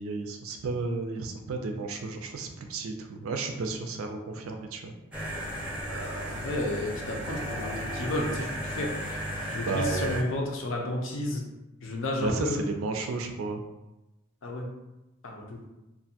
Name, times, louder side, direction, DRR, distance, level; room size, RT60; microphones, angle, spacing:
voice 1, 0.0-4.9 9.6-10.2 12.2-13.6, right 3 dB, 80° right, 4 dB, 0.4 m, -32 dB
sound 1, 5.1-10.2, equal, 5° right, 0.5 m, -35 dB
voice 2, 5.9-8.9 9.5-11.5 11.8-12.6 14.4-14.7 15.2-15.6, left 1 dB, 65° left, 0 dB, 0.5 m, -32 dB
2.5 x 2.1 x 2.7 m, 0.98 s
head